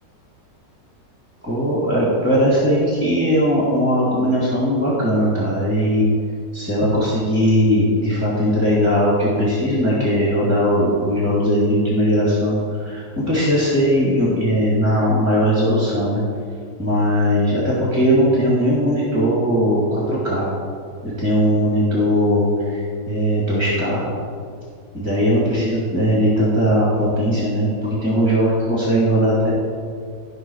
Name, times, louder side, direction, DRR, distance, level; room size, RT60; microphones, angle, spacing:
voice 1, 1.4-6.1 6.5-16.2 16.8-20.5 21.0-24.0 24.9-29.5, equal, 10° right, -8 dB, 2.3 m, -19 dB
13.5 x 5.7 x 4.6 m, 2.2 s
omnidirectional pair, 1.9 m